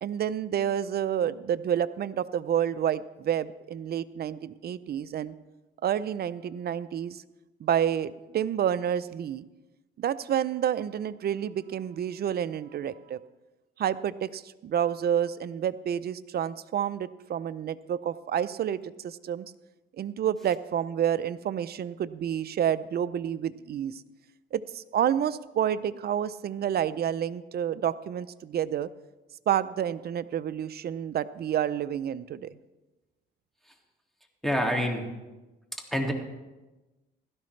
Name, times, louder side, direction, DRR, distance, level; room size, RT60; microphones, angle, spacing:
voice 1, 0.0-5.3 5.8-7.2 7.6-9.4 10.0-13.2 13.8-19.5 20.0-24.0 24.5-28.9 29.5-32.6, right 9 dB, 55° right, 15 dB, 0.5 m, -29 dB
voice 2, 34.4-35.0 35.9-36.1, equal, ahead, 1 dB, 2.1 m, -26 dB
16.5 x 12.5 x 3.2 m, 1.1 s
cardioid pair, 90°, 20 cm